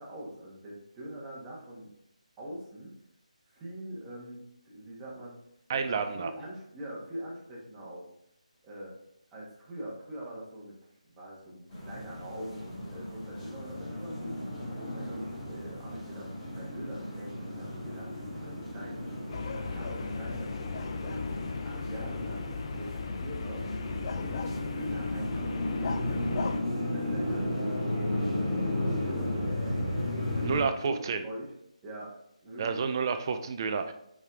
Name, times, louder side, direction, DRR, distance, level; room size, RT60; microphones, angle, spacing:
voice 1, 0.0-1.9 2.4-2.9 3.5-5.4 5.7-8.1 8.6-8.9 9.3-10.8 11.0-14.4 14.9-19.1 19.5-21.3 21.7-23.7 24.1-26.5 26.8-29.9 30.3-31.5 31.8-32.1 32.4-32.8, right 1 dB, 15° right, -5 dB, 1.6 m, -43 dB
voice 2, 5.7-6.3 30.4-31.2 32.6-33.9, right 5 dB, 35° right, 8 dB, 0.5 m, -30 dB
sound 1, 11.7-30.6, left 1 dB, 20° left, 2.0 m, -34 dB
sound 2, 19.3-26.6, left 5 dB, 40° left, 0.4 m, -38 dB
5.2 x 4.9 x 3.7 m, 0.77 s
figure-of-eight pair, 155°, 4 cm